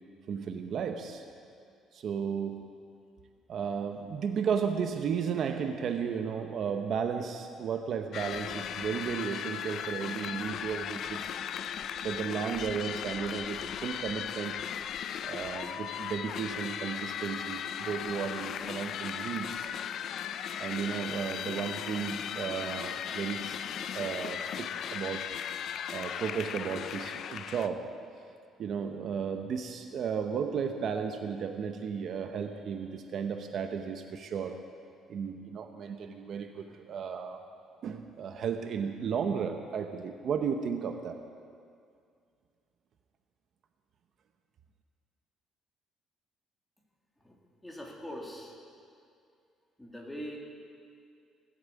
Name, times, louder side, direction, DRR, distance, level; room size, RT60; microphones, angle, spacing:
voice 1, 0.3-1.2 1.9-2.7 3.5-11.4 12.0-14.6 15.2-19.7 20.6-25.3 25.9-28.0 28.6-34.6 35.1-37.4 37.8-41.2, right 6 dB, 55° right, 6 dB, 0.9 m, -34 dB
sound 1, 8.1-27.7, left 9 dB, 60° left, 0.5 m, -37 dB
voice 2, 47.2-48.5 49.8-50.4, equal, 5° left, -2 dB, 2.7 m, -42 dB
18.0 x 8.9 x 8.3 m, 2.3 s
cardioid pair, 125°, 0 cm